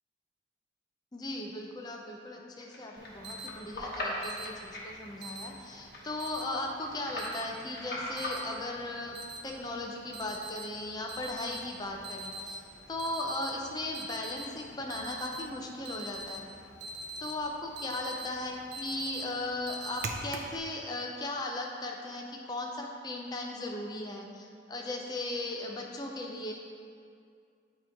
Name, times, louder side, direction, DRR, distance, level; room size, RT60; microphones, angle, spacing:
voice 1, 1.1-16.4 17.2-26.5, left 2 dB, 20° left, 0 dB, 0.4 m, -37 dB
sound 1, 2.6-8.3, left 1 dB, 55° left, 1.1 m, -40 dB
Alarm, 3.0-20.6, right 1 dB, 60° right, 0.5 m, -44 dB
8.5 x 2.9 x 4.5 m, 2.3 s
head